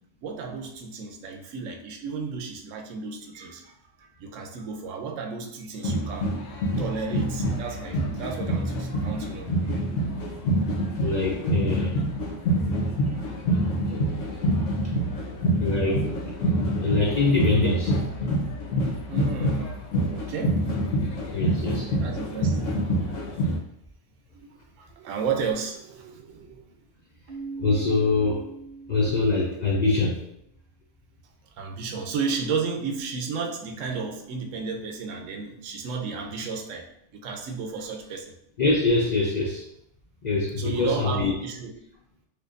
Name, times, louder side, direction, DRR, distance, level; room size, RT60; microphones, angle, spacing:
voice 1, 0.2-6.4 6.8-9.7 13.1-13.8 19.1-19.8 20.1-20.6 21.6-23.2 24.3-26.7 31.5-38.3 40.6-41.7, right 5 dB, 90° right, 3 dB, 1.0 m, -33 dB
sound 1, 5.8-23.6, equal, 85° left, 1.2 m, -26 dB
voice 2, 11.0-12.0 15.6-16.1 16.8-18.0 21.3-21.9 27.6-28.5 28.9-30.2 38.6-39.6 40.2-41.3, left 3 dB, 55° left, -3 dB, 0.4 m, -24 dB
Keyboard (musical), 27.3-29.9, right 4 dB, 55° right, 0.6 m, -40 dB
4.4 x 2.6 x 2.5 m, 0.77 s
omnidirectional pair, 1.3 m